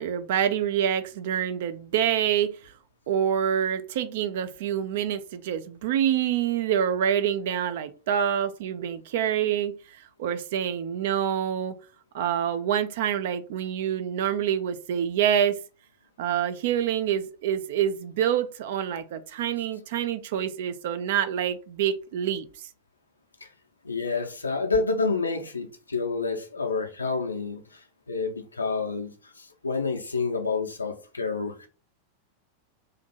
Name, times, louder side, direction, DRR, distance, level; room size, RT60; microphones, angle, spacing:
voice 1, 0.0-2.7 3.1-11.7 12.1-15.6 16.2-22.7, right 9 dB, 55° right, 0.4 m, -26 dB
voice 2, 23.8-27.8 28.1-29.1 29.6-31.7, left 4 dB, 80° left, 0.6 m, -28 dB
2.6 x 2.5 x 4.2 m
figure-of-eight pair, 90°, 0 cm